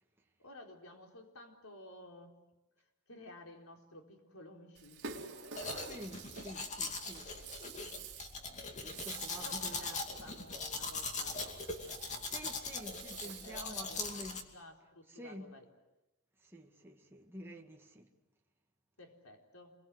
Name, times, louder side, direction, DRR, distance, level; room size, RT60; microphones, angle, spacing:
voice 1, 0.4-2.4 2.8-5.3 5.6-5.8 9.4-12.5 12.9-15.6 19.0-19.8, left 1 dB, 80° left, 4.1 m, -54 dB
Rattle (instrument), 4.7-13.7, right 5 dB, 55° right, 3.3 m, -50 dB
Domestic sounds home sounds, 5.6-14.4, left 3 dB, 35° left, 2.6 m, -41 dB
voice 2, 5.8-7.5 7.8-8.1 8.8-10.0 12.3-14.5 15.1-15.5 16.4-18.1, equal, 10° right, 1.9 m, -49 dB
28.5 x 23.0 x 8.0 m
head